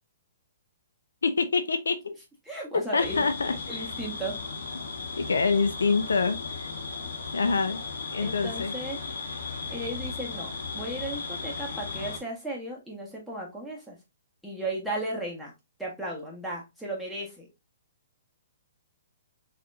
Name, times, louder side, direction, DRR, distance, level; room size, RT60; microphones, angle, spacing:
voice 1, 1.2-2.1 2.7-3.9 5.2-6.7 7.3-7.8 8.1-8.7, left 4 dB, 90° left, 0.5 m, -26 dB
voice 2, 2.4-3.2 3.7-4.4 8.2-9.0 9.7-14.0 14.4-15.5 15.8-17.5, right 1 dB, ahead, 1.4 m, -35 dB
sound 1, 3.0-12.2, left 4 dB, 75° left, 1.1 m, -36 dB
4.2 x 2.9 x 2.6 m
hypercardioid pair, 140°, 0 cm